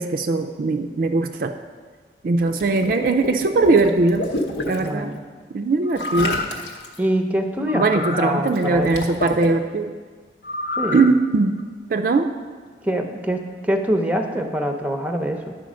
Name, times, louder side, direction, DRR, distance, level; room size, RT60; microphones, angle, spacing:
voice 1, 0.0-1.5 2.2-4.3 4.7-5.1 5.5-6.4 7.7-9.9 10.9-11.6 11.9-12.3, right 3 dB, 50° right, 6 dB, 0.4 m, -20 dB
Water / Liquid, 2.4-4.9 6.0-7.0 8.5-9.5, left 2 dB, 75° left, 1.0 m, -29 dB
voice 2, 4.8-5.2 7.0-8.9 10.8-11.0 12.8-15.6, equal, 10° right, 5 dB, 0.6 m, -24 dB
sound 1, 5.8-6.6 7.7-8.3 10.4-11.1 11.6-11.7, left 2 dB, 55° left, 0.6 m, -28 dB
10.5 x 4.9 x 6.2 m, 1.5 s
head